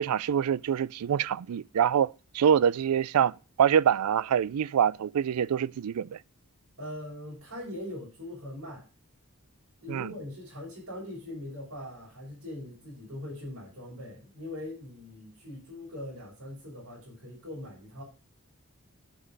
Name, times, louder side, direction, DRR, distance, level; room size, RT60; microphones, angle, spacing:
voice 1, 0.0-6.2 9.9-10.1, right 8 dB, 90° right, 0.4 m, -25 dB
voice 2, 6.8-8.9 9.8-18.0, left 1 dB, 70° right, 6.3 m, -41 dB
9.6 x 6.1 x 5.3 m
head